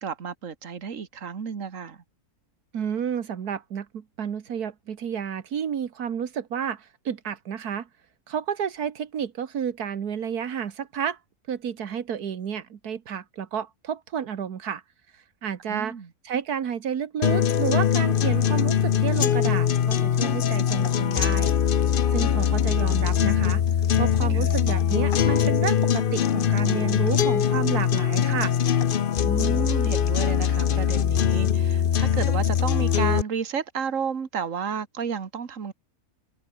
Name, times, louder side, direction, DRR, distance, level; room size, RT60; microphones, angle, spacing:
voice 1, 0.0-2.0 15.7-16.1 24.3-24.5 29.2-35.7, right 6 dB, 55° right, 2.0 m, -32 dB
voice 2, 2.7-7.9 8.3-11.2 11.5-14.8 15.4-16.0 16.2-21.5 22.1-23.6 24.0-28.6, right 8 dB, 85° right, 1.9 m, -31 dB
sound 1, 17.2-33.2, left 8 dB, 50° left, 0.7 m, -22 dB
omnidirectional pair, 1.6 m